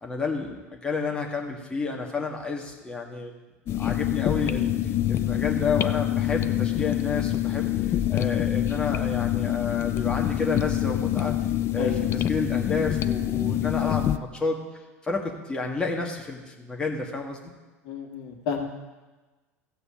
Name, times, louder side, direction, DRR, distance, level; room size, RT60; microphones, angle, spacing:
voice 1, 0.0-3.3 3.8-4.7 5.1-7.7 8.1-11.3 11.7-14.6 15.0-17.5, left 4 dB, 10° left, 0 dB, 1.6 m, -30 dB
sound 1, 3.7-14.2, left 12 dB, 30° left, 0.4 m, -26 dB
voice 2, 11.8-12.1 17.9-18.6, left 6 dB, 50° left, 2 dB, 1.8 m, -31 dB
15.0 x 7.8 x 5.1 m, 1.2 s
figure-of-eight pair, 75°, 8 cm